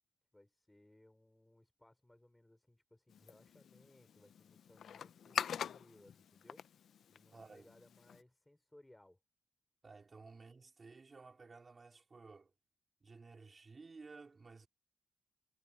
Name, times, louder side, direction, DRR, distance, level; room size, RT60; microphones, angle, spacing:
voice 1, 0.3-6.6 7.1-9.2, left 1 dB, 10° left, 5.1 m, -65 dB
sound 1, 3.1-8.2, left 8 dB, 70° left, 0.5 m, -45 dB
voice 2, 7.3-7.7 9.8-12.5 13.0-14.7, right 4 dB, 30° right, 4.1 m, -55 dB
cardioid pair, 120°, 0 cm